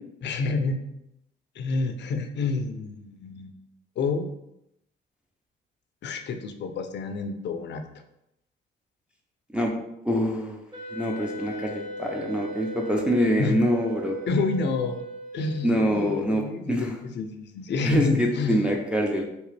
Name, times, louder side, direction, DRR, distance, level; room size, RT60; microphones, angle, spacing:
voice 1, 0.2-0.8 1.6-3.5 4.0-4.3 6.0-7.8 13.4-13.6 14.3-15.0 15.3-16.9 17.2-18.6, left 3 dB, 60° left, 6 dB, 0.5 m, -28 dB
voice 2, 10.0-10.6 10.9-14.2 15.6-17.0 17.8-19.2, equal, 5° right, -1 dB, 0.6 m, -25 dB
Wind instrument woodwind instrument, 10.7-15.9, right 2 dB, 25° right, 1.1 m, -38 dB
3.2 x 2.9 x 3.2 m, 0.82 s
cardioid pair, 90°, 20 cm